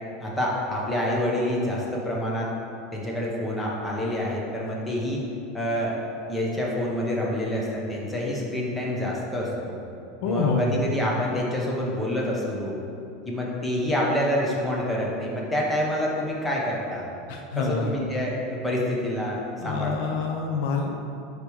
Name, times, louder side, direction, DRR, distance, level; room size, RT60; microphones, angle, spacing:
voice 1, 0.2-2.5 2.9-5.2 5.5-6.0 6.3-9.8 10.2-12.8 13.3-17.1 17.6-20.2, left 1 dB, 10° left, -4 dB, 1.0 m, -27 dB
voice 2, 10.2-10.8 17.3-18.0 19.6-20.9, left 4 dB, 65° left, 3 dB, 0.6 m, -26 dB
5.2 x 4.8 x 4.7 m, 2.7 s
supercardioid pair, 145°, 0 cm